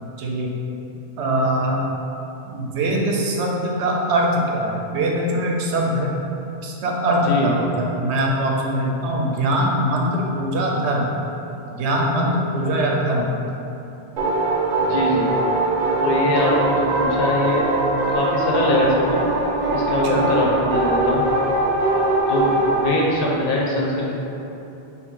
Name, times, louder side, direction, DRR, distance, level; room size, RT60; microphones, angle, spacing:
voice 1, 0.2-0.6 1.2-1.8 2.5-6.1 6.6-11.1 11.7-13.4 20.0-20.3, right 1 dB, 85° right, -1 dB, 0.9 m, -22 dB
sound 1, 14.2-22.9, right 2 dB, 55° right, 0.6 m, -21 dB
voice 2, 14.9-15.3 16.0-17.7 18.1-19.2 19.7-21.3 22.3-24.2, left 1 dB, 60° left, -3 dB, 0.8 m, -22 dB
5.9 x 2.1 x 3.6 m, 3.0 s
omnidirectional pair, 1.1 m